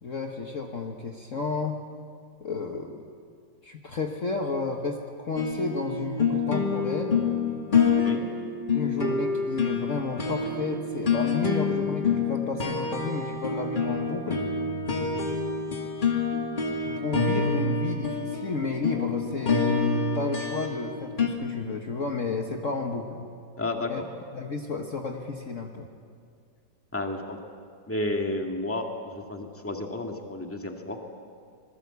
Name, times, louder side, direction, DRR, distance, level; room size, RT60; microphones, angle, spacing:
voice 1, 0.0-1.8 2.4-3.1 3.6-7.3 8.7-14.4 17.0-23.3 23.9-24.0 24.3-25.9, left 3 dB, 45° left, 2 dB, 1.6 m, -32 dB
sound 1, 5.4-21.3, left 4 dB, 25° left, 2.2 m, -27 dB
voice 2, 7.9-8.2 14.9-15.5 23.6-23.9 26.9-27.4 27.9-31.1, left 2 dB, 5° left, 2 dB, 1.9 m, -32 dB
25.5 x 21.0 x 8.3 m, 2.2 s
omnidirectional pair, 2.0 m